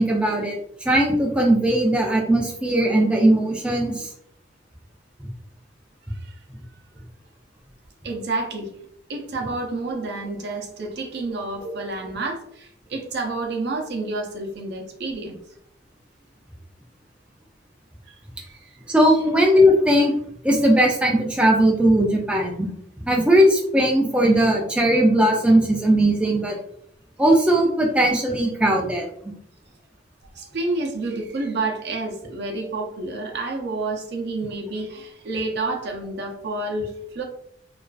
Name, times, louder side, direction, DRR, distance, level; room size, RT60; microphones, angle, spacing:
voice 1, 0.0-4.1 11.6-11.7 18.9-20.1 20.4-22.7 23.0-26.6 27.2-29.3, right 1 dB, 5° right, -1 dB, 0.3 m, -19 dB
voice 2, 8.0-8.7 9.1-15.4 18.1-18.8 30.3-37.2, right 2 dB, 65° right, 1 dB, 0.5 m, -29 dB
2.4 x 2.3 x 2.2 m, 0.70 s
head